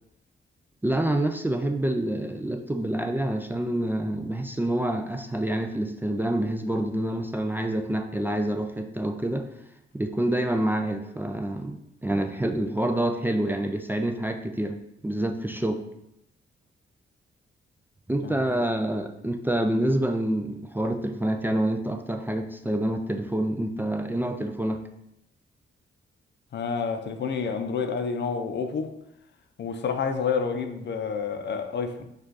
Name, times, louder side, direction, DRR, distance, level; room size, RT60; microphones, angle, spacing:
voice 1, 0.8-9.5 9.9-14.8 15.0-15.8 18.1-24.8, right 1 dB, 10° right, 0.3 m, -27 dB
voice 2, 18.2-18.6 26.5-28.9 29.6-32.0, left 5 dB, 55° left, 0.5 m, -29 dB
5.0 x 2.4 x 3.9 m
cardioid pair, 70°, 21 cm